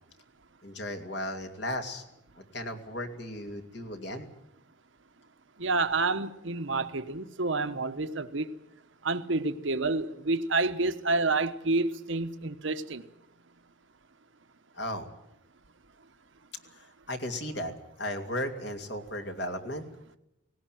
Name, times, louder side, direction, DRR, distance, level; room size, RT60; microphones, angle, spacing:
voice 1, 0.6-2.0 2.3-4.3 14.7-15.1 16.7-17.7 18.0-19.8, left 1 dB, 55° left, 2.7 m, -35 dB
voice 2, 5.6-8.5 9.0-13.0, right 3 dB, 70° right, 1.2 m, -29 dB
18.5 x 18.0 x 9.2 m
head